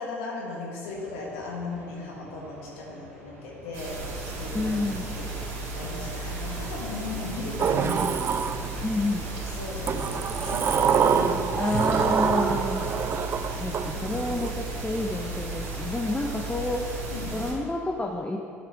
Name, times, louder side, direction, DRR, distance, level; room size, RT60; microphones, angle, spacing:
voice 1, 0.0-4.7 5.2-8.1 9.6-11.8 13.9-14.2 17.1-17.4, left 3 dB, 75° left, -4 dB, 1.6 m, -37 dB
sound 1, 0.9-17.0, right 1 dB, 90° right, 0.9 m, -49 dB
sound 2, 3.7-17.5, right 2 dB, 70° right, 2.0 m, -34 dB
voice 2, 4.5-5.2 8.8-9.3 11.6-13.1 13.5-17.0 17.3-18.4, left 2 dB, 15° left, 2 dB, 0.6 m, -29 dB
Sliding door, 7.6-9.1 9.9-14.5, right 7 dB, 35° right, 0.3 m, -26 dB
11.5 x 5.8 x 3.5 m, 2.4 s
figure-of-eight pair, 60°, 7 cm